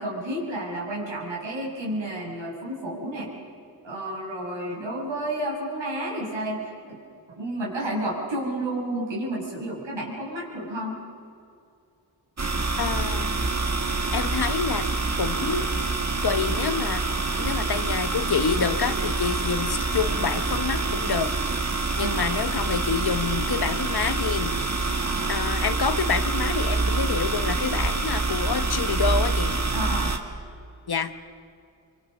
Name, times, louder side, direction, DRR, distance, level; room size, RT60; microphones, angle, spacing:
voice 1, 0.0-3.3 3.8-7.0 7.3-11.0 21.9-22.6 25.0-25.3 29.7-30.2, right 1 dB, 70° right, -4 dB, 6.2 m, -31 dB
sound 1, 12.4-30.2, right 3 dB, 35° right, 1.9 m, -26 dB
voice 2, 12.8-13.4 14.1-14.9 15.2-15.7 16.2-17.0 17.4-21.3 21.6-24.6 25.3-29.6 30.9-31.1, left 6 dB, 55° left, 11 dB, 1.2 m, -27 dB
25.0 x 23.5 x 6.7 m, 2.5 s
cardioid pair, 70°, 46 cm